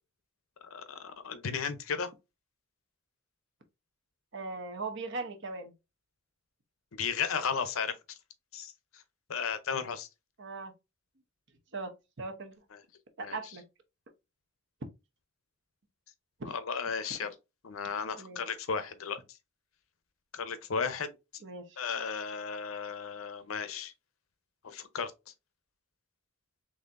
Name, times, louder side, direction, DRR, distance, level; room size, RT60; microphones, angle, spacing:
voice 1, 0.6-2.1 6.9-8.0 8.5-9.0 9.3-10.1 12.7-12.8 13.2-13.4 16.4-17.3 17.6-19.2 20.3-21.1 21.8-23.9 24.6-25.1, left 6 dB, 85° left, 0.6 m, -34 dB
voice 2, 4.3-5.7 10.4-10.7 11.7-12.5 13.2-13.6 16.4-16.5 18.2-18.4 21.4-21.6, right 3 dB, 60° right, 0.9 m, -39 dB
4.1 x 3.2 x 2.5 m
head